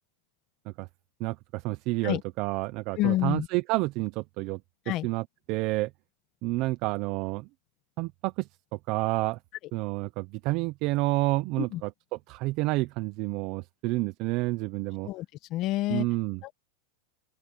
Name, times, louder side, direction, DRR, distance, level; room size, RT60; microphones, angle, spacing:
voice 1, 1.2-4.6 5.0-5.9 6.4-7.5 8.0-9.4 9.7-15.1 15.9-16.4, right 21 dB, 45° right, 0.7 m, -29 dB
voice 2, 2.9-3.5 4.9-5.1 11.6-11.8 15.0-16.1 16.4-16.5, left 16 dB, 40° left, 1.2 m, -28 dB
open air
supercardioid pair, 140°, 0 cm